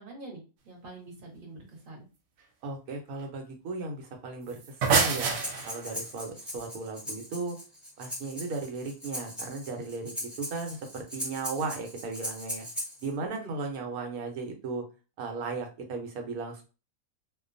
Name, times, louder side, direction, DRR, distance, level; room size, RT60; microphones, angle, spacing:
voice 1, 0.0-2.1 13.2-13.6, right 2 dB, 40° right, -1 dB, 1.0 m, -45 dB
voice 2, 2.6-5.4 5.6-7.6 8.0-12.7 13.0-14.8 15.2-16.6, right 3 dB, 80° right, 3 dB, 1.1 m, -36 dB
sound 1, 4.5-6.0, right 5 dB, 65° right, 0.7 m, -26 dB
Breathing, 5.3-13.1, equal, ahead, 0.4 m, -39 dB
2.5 x 2.2 x 2.5 m, 0.32 s
omnidirectional pair, 1.5 m